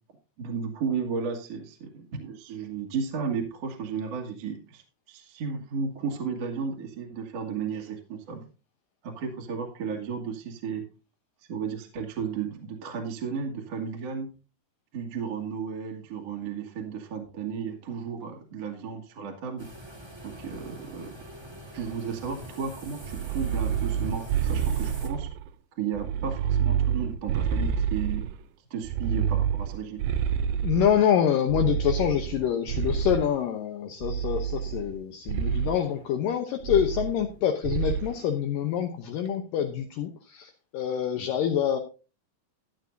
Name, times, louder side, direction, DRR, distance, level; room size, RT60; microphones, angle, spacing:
voice 1, 0.4-8.4 9.0-10.8 11.5-14.3 14.9-19.7 20.2-21.2 21.7-25.3 25.8-28.3 28.7-30.0, right 6 dB, 50° right, 2 dB, 2.6 m, -34 dB
sound 1, 19.6-25.1, right 1 dB, 25° right, 0.6 m, -44 dB
sound 2, 23.0-25.5 25.9-28.4 28.8-31.0 31.5-33.4 34.0-35.0 35.3-35.8 36.6-37.4 37.6-38.1, right 8 dB, 80° right, 2.3 m, -28 dB
voice 2, 30.6-41.8, left 9 dB, 70° left, 5 dB, 2.3 m, -26 dB
14.5 x 10.5 x 2.7 m, 0.32 s
omnidirectional pair, 4.5 m